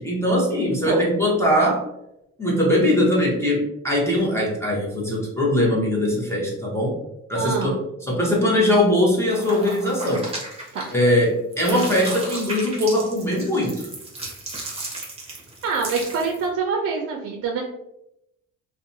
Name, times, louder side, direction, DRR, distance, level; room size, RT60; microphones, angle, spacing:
voice 1, 0.0-1.8 2.4-7.0 7.3-7.7 8.1-10.3 10.9-13.9, left 1 dB, 10° left, -4 dB, 0.9 m, -21 dB
voice 2, 7.3-7.8 10.7-10.9 15.6-17.6, right 5 dB, 50° right, 0 dB, 0.5 m, -25 dB
sound 1, 9.3-11.2 11.5-16.5, right 2 dB, 20° right, 0.9 m, -34 dB
2.6 x 2.2 x 2.6 m, 0.85 s
cardioid pair, 90°, 30 cm